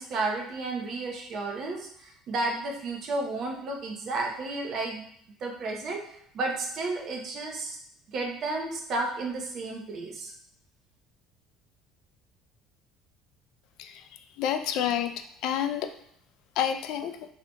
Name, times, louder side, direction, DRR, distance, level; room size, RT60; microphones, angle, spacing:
voice 1, 0.0-5.0 5.4-6.0 6.3-7.8 8.1-10.3, right 2 dB, 50° right, 1 dB, 0.7 m, -32 dB
voice 2, 14.4-15.1 15.4-15.9 16.6-17.2, left 9 dB, 70° left, 8 dB, 0.3 m, -28 dB
4.2 x 2.7 x 2.2 m, 0.66 s
cardioid pair, 130°, 0 cm